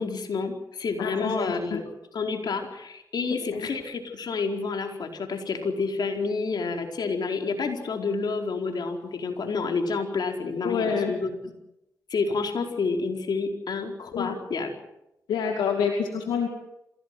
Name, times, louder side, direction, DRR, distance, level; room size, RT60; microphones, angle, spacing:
voice 1, 0.0-1.8 2.1-11.5 12.1-14.7, left 4 dB, 70° left, 3 dB, 4.6 m, -29 dB
voice 2, 1.0-1.8 3.5-3.7 10.6-11.1 14.1-14.3 15.3-16.5, left 6 dB, 85° left, 3 dB, 2.3 m, -27 dB
26.5 x 17.5 x 7.8 m, 0.89 s
supercardioid pair, 40°, 7 cm